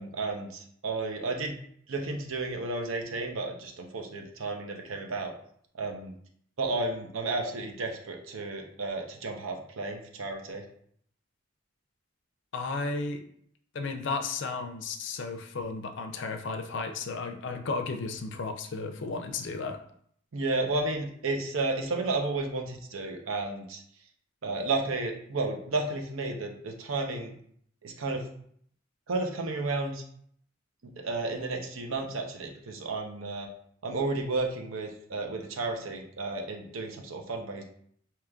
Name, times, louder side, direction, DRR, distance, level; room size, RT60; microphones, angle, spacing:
voice 1, 0.0-1.5 1.9-5.3 5.8-6.1 6.6-10.6 20.3-23.8 24.4-27.3 27.8-28.2 29.1-30.0 30.8-33.5 33.8-37.6, right 3 dB, 80° right, 2 dB, 0.7 m, -32 dB
voice 2, 12.5-13.2 13.7-19.8, left 4 dB, 60° left, 6 dB, 0.4 m, -34 dB
4.9 x 2.9 x 2.3 m, 0.63 s
head